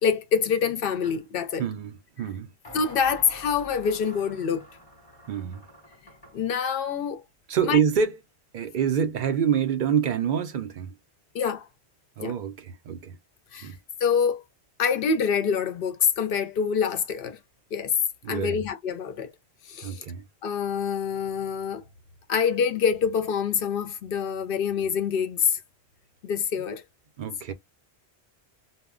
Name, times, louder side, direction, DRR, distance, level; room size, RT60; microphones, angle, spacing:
voice 1, 0.0-1.6 2.7-4.7 6.3-7.2 7.7-7.8 11.3-11.7 12.2-12.3 13.5-13.7 14.0-14.4 14.8-17.4 17.7-17.9 18.3-19.3 19.7-20.0 20.4-21.8 22.3-25.6 26.2-26.8, left 6 dB, 65° left, 0.7 m, -26 dB
sound 1, 1.0-1.2 2.6-6.4, equal, 30° left, 0.9 m, -47 dB
voice 2, 1.6-2.5 5.3-5.6 7.5-8.2 8.5-11.0 12.2-13.2 13.6-13.8 18.2-18.6 19.8-20.3 27.2-27.5, right 7 dB, 60° right, 0.6 m, -26 dB
2.1 x 2.1 x 3.6 m
omnidirectional pair, 1.1 m